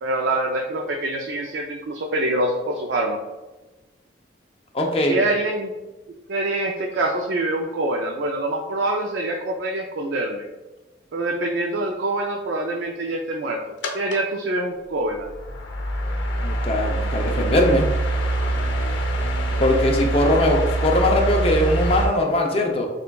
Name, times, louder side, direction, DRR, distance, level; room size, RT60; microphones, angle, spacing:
voice 1, 0.0-3.2 5.1-5.7 6.3-10.4 11.1-13.6 13.9-15.3, right 2 dB, 80° right, 1 dB, 0.4 m, -25 dB
voice 2, 4.7-5.2 16.4-17.9 19.6-22.9, left 1 dB, 30° left, 1 dB, 0.5 m, -20 dB
sound 1, 13.8-14.2 15.0-22.1, right 1 dB, 85° left, 0.7 m, -24 dB
6.5 x 2.3 x 2.3 m, 1.1 s
head